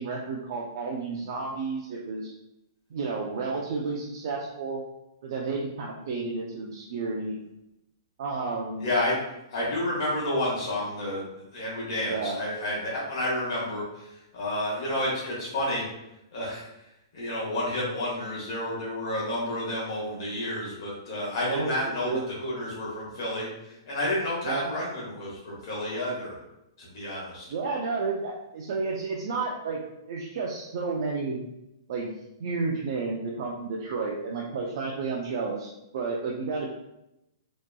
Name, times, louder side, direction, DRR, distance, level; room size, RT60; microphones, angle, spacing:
voice 1, 0.0-2.3 2.9-4.8 5.2-7.4 8.2-8.8 12.0-12.4 21.4-21.7 22.0-22.2 24.4-24.6 27.5-31.4 31.9-32.1 32.4-35.7 35.9-36.7, right 4 dB, 55° right, -2 dB, 0.4 m, -31 dB
voice 2, 8.8-9.2 9.5-11.2 11.5-15.9 16.3-16.7 17.1-26.3 26.8-27.5, left 1 dB, 55° left, -6 dB, 1.0 m, -30 dB
2.8 x 2.3 x 2.2 m, 0.88 s
hypercardioid pair, 155°, 2 cm